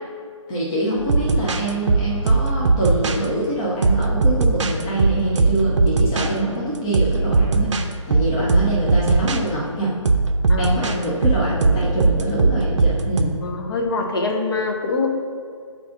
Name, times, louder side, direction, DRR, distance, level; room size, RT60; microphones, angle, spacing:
voice 1, 0.5-9.9 10.6-13.3, right 1 dB, 10° left, -7 dB, 0.3 m, -25 dB
sound 1, 1.0-3.2 3.8-6.3 6.9-7.9 8.1-9.4 10.1-13.2, right 3 dB, 65° right, 0.5 m, -19 dB
voice 2, 10.5-11.0 13.4-15.1, left 3 dB, 45° left, 2 dB, 0.8 m, -24 dB
7.1 x 2.6 x 5.8 m, 2.2 s
figure-of-eight pair, 155°, 17 cm